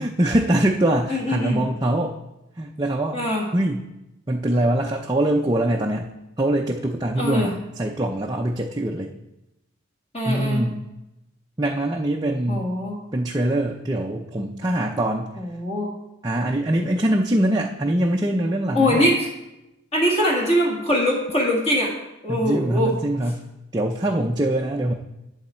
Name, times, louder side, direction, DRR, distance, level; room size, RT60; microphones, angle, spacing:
voice 1, 0.0-2.2 2.6-3.2 3.5-3.8 4.3-6.1 6.4-9.1 10.3-10.9 11.6-12.7 13.1-15.4 16.2-19.1 22.3-24.9, right 1 dB, 20° right, 0 dB, 0.5 m, -23 dB
voice 2, 1.1-1.6 3.1-3.4 7.2-7.5 10.1-10.6 12.5-13.0 15.4-15.9 18.7-19.1 19.9-21.9 22.2-22.9, equal, 30° left, -2 dB, 1.8 m, -22 dB
12.0 x 7.1 x 4.3 m, 0.94 s
head